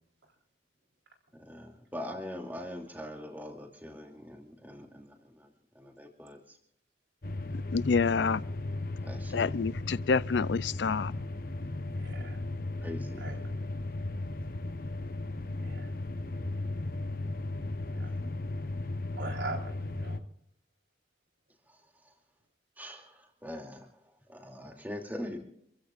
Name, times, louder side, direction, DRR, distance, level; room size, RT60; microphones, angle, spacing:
voice 1, 1.4-6.6 9.0-9.6 12.8-13.3 17.8-18.2 21.7-22.1 22.8-25.4, left 1 dB, 10° right, 2.9 m, -43 dB
sound 1, 7.2-20.2, left 2 dB, 50° left, 1.0 m, -36 dB
voice 2, 7.7-8.4 9.3-11.1, left 5 dB, 75° left, 0.5 m, -27 dB
voice 3, 12.0-12.4 13.2-13.6 15.6-15.9 18.0-18.1 19.2-20.2, right 2 dB, 85° right, 4.3 m, -40 dB
28.0 x 15.5 x 2.6 m
head